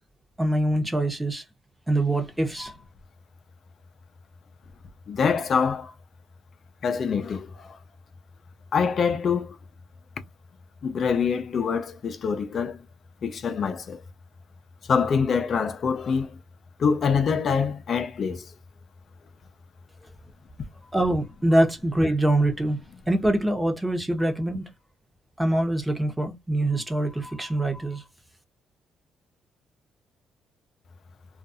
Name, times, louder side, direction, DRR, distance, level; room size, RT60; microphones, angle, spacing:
voice 1, 0.4-1.4 1.9-2.7 20.9-22.8 23.1-24.7 25.4-28.0, right 1 dB, 10° right, 0.8 m, -24 dB
voice 2, 5.1-5.9 6.8-7.4 8.7-9.5 10.8-12.8 13.2-14.0 14.9-16.3 16.8-18.4, left 6 dB, 55° left, 0.4 m, -25 dB
2.5 x 2.3 x 2.6 m
cardioid pair, 90°, 0 cm